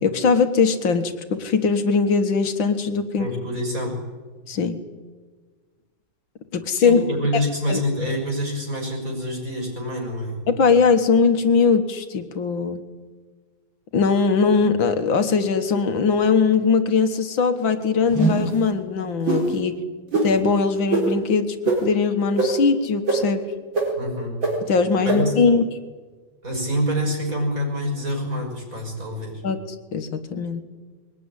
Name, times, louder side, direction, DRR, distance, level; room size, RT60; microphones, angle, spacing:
voice 1, 0.0-3.3 4.5-4.8 6.5-7.0 7.3-7.4 7.7-7.8 10.5-12.8 13.9-19.8 20.2-23.4 24.7-25.6 29.4-29.6 29.9-30.6, left 5 dB, 80° left, 8 dB, 2.2 m, -20 dB
voice 2, 3.2-4.1 6.8-10.5 24.0-24.5 25.0-25.6 26.4-29.4, equal, 45° right, 1 dB, 6.4 m, -26 dB
sound 1, 18.1-18.5 19.2-19.4 20.1-20.3 20.9-21.0 21.6-21.8 22.4-22.5 23.1-23.2 23.7-23.8 24.4-24.5 25.1-25.2, right 3 dB, 80° right, 5.3 m, -20 dB
22.5 x 19.0 x 9.9 m, 1.4 s
omnidirectional pair, 2.1 m